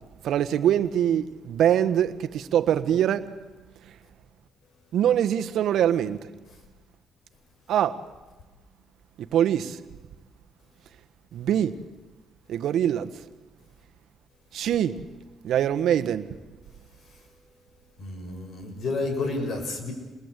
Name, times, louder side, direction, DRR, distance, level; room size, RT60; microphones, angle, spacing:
voice 1, 0.2-3.3 4.9-6.2 7.7-8.0 9.3-9.8 11.3-11.8 12.5-13.1 14.5-15.0 15.4-16.2, right 10 dB, 75° right, 1.4 m, -23 dB
voice 2, 18.0-19.9, left 3 dB, 55° left, 6.6 m, -30 dB
28.5 x 21.0 x 8.4 m
cardioid pair, 90°, 0 cm